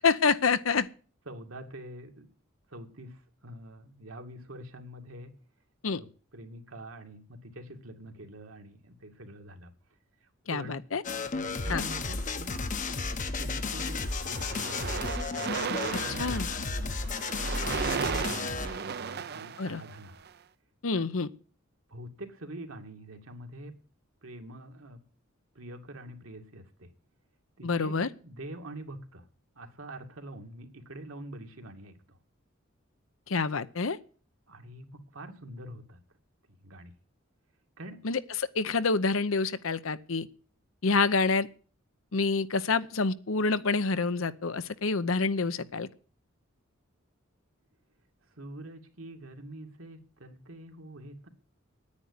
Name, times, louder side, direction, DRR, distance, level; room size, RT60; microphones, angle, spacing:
voice 1, 0.0-0.9 5.8-6.0 10.5-11.0 11.7-11.8 16.2-16.5 19.6-19.8 20.8-21.3 27.6-28.1 33.3-34.0 38.0-38.2 38.6-40.3 40.8-41.5 42.1-45.9, left 4 dB, 70° left, 0.8 m, -27 dB
voice 2, 1.3-2.3 2.7-5.3 6.0-6.1 6.3-9.7 10.5-10.8 11.4-12.6 13.4-15.1 15.8-16.3 16.9-20.2 21.9-23.7 24.2-25.0 25.6-26.9 27.6-28.0 28.2-29.2 29.6-32.2 34.5-36.0 36.5-36.9 37.8-38.0 48.3-51.3, right 1 dB, 75° right, 2.2 m, -45 dB
sound 1, 11.0-18.9, left 3 dB, 40° left, 0.9 m, -33 dB
sound 2, 11.5-12.5 13.3-13.5 13.8-20.3, right 6 dB, 50° right, 0.6 m, -36 dB
9.8 x 9.6 x 9.6 m
head